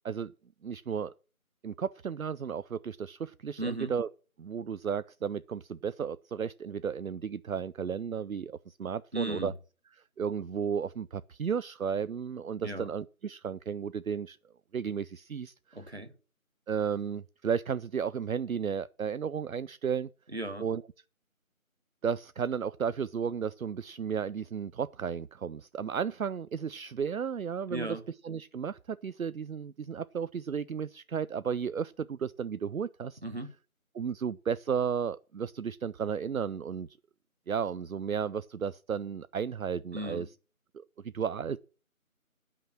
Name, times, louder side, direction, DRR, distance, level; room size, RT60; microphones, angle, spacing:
voice 1, 0.6-1.1 1.6-4.1 4.4-9.5 10.2-14.4 14.7-15.8 16.7-20.1 20.6-20.8 22.0-28.0 28.2-33.2 33.9-36.9 37.5-40.3 40.7-41.6, right 7 dB, 75° right, 0.5 m, -33 dB
voice 2, 3.6-3.9 9.1-9.5 12.6-12.9 15.7-16.1 20.3-20.7 27.7-28.0 33.2-33.5 39.9-40.3, right 1 dB, 50° right, 1.5 m, -36 dB
15.5 x 5.9 x 6.3 m
figure-of-eight pair, 175°, 42 cm